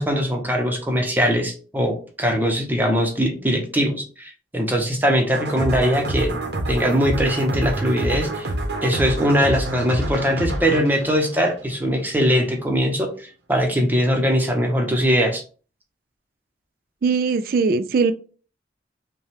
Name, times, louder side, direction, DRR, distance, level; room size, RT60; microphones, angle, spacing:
voice 1, 0.0-6.3 6.7-8.5 8.8-15.4, equal, 10° right, 0.8 m, -21 dB
sound 1, 5.3-12.1, right 1 dB, 75° right, 0.9 m, -27 dB
voice 2, 17.0-18.1, right 4 dB, 55° right, 0.4 m, -20 dB
5.4 x 2.3 x 3.4 m
head